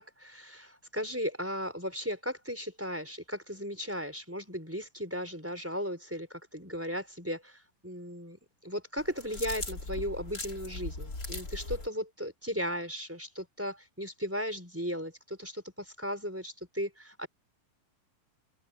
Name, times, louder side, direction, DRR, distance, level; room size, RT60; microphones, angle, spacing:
voice 1, 0.0-17.3, equal, 5° right, 3.9 m, -36 dB
sound 1, 9.0-11.9, left 2 dB, 25° left, 4.0 m, -39 dB
open air
omnidirectional pair, 4.1 m